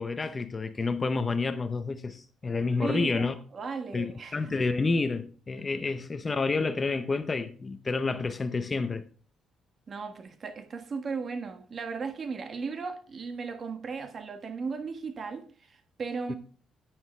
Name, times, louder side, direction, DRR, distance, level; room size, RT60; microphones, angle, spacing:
voice 1, 0.0-3.3 3.9-9.0 16.3-16.4, left 3 dB, 30° left, 0.8 m, -29 dB
voice 2, 2.7-4.5 9.9-16.3, right 5 dB, 40° right, 1.6 m, -36 dB
10.0 x 9.3 x 3.3 m
cardioid pair, 100°, 0 cm